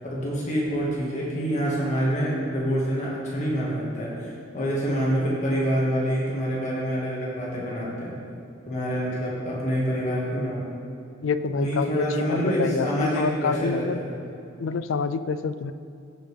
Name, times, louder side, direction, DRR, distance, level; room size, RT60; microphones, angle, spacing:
voice 1, 0.1-8.2 8.7-10.6 11.5-14.1, equal, 35° left, -6 dB, 2.0 m, -26 dB
voice 2, 11.2-14.0 14.6-15.7, left 5 dB, 75° left, 12 dB, 0.4 m, -27 dB
16.0 x 5.3 x 3.5 m, 2.7 s
head